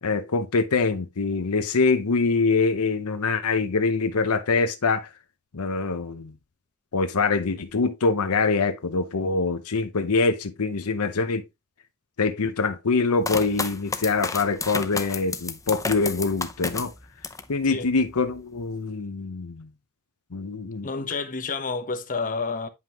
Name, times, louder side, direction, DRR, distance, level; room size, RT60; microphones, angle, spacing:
voice 1, 0.0-5.1 5.5-6.3 6.9-11.4 12.2-16.9 17.5-19.7 20.3-20.9, left 4 dB, 80° left, 0.8 m, -24 dB
sound 1, 13.2-17.5 18.0-18.6, left 4 dB, 15° left, 0.6 m, -31 dB
voice 2, 20.8-22.7, left 4 dB, 40° left, 1.0 m, -29 dB
9.3 x 5.5 x 3.0 m
head